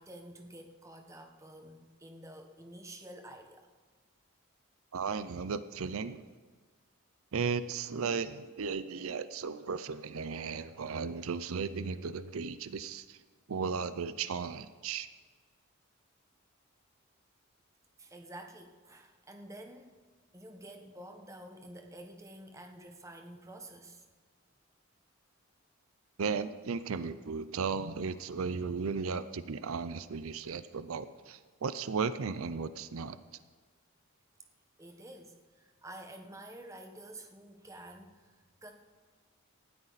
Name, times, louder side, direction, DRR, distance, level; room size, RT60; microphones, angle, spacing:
voice 1, 0.0-3.7 18.0-20.0 20.3-24.0 34.8-38.7, right 1 dB, 15° right, 4 dB, 1.2 m, -49 dB
voice 2, 4.9-6.2 7.3-13.2 13.5-15.1 26.2-33.2, right 5 dB, 75° right, 13 dB, 0.5 m, -35 dB
18.5 x 13.0 x 4.1 m, 1.5 s
head